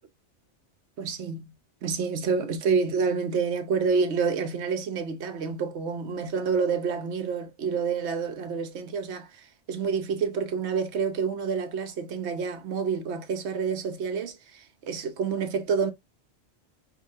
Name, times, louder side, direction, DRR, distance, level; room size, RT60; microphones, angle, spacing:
voice 1, 1.0-1.5 1.8-15.9, right 5 dB, 70° right, 0.9 m, -28 dB
4.8 x 2.2 x 2.6 m
omnidirectional pair, 1.2 m